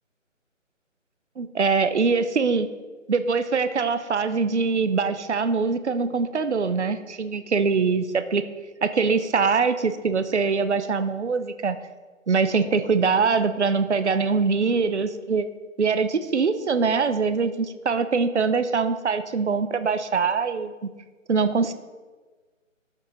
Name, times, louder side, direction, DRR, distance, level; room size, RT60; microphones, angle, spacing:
voice 1, 1.4-2.7 3.1-8.4 8.8-11.8 12.3-15.5 15.8-20.7 21.3-21.7, right 5 dB, 60° right, 10 dB, 0.7 m, -23 dB
12.5 x 5.6 x 4.0 m, 1.3 s
figure-of-eight pair, 175°, 39 cm